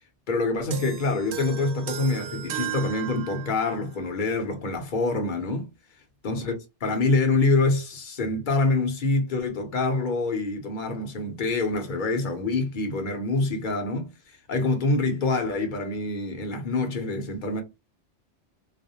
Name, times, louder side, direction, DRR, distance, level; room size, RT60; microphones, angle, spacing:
voice 1, 0.3-5.7 6.2-6.5 6.8-14.1 14.5-17.6, left 3 dB, 50° left, 0.7 m, -26 dB
sound 1, 0.7-3.9, right 10 dB, 75° right, 0.8 m, -35 dB
2.4 x 2.0 x 2.7 m
omnidirectional pair, 1.2 m